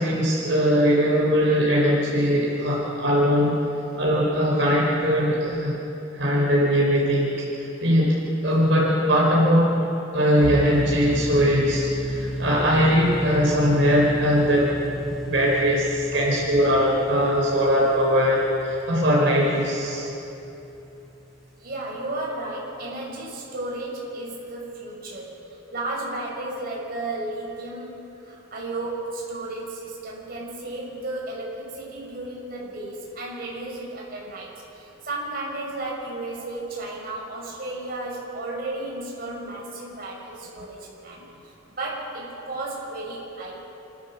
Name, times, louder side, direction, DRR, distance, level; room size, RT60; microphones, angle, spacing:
voice 1, 0.0-3.6 4.0-5.8 6.1-8.2 8.4-9.7 10.1-14.7 15.3-20.1, equal, 75° right, -5 dB, 4.5 m, -20 dB
sound 1, 10.4-21.3, equal, ahead, 2.7 m, -33 dB
voice 2, 21.6-41.3 41.8-43.6, right 2 dB, 50° right, -4 dB, 6.2 m, -33 dB
29.5 x 13.5 x 7.1 m, 3.0 s
head